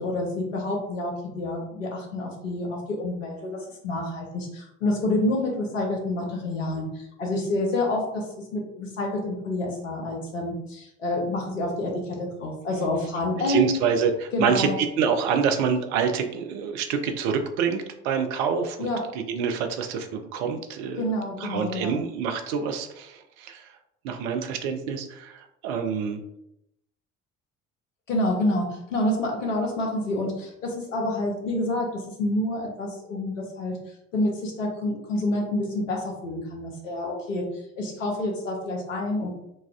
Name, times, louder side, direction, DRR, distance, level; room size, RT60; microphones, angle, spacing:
voice 1, 0.0-13.9 14.3-14.8 18.8-19.0 21.0-22.0 28.1-33.8 34.1-37.4 37.8-39.3, left 1 dB, 80° left, 0 dB, 0.7 m, -28 dB
voice 2, 13.4-18.9 19.1-21.0 21.4-23.7 24.0-26.2, right 6 dB, 60° right, 6 dB, 0.5 m, -26 dB
4.0 x 2.3 x 2.4 m, 0.83 s
figure-of-eight pair, 50°, 37 cm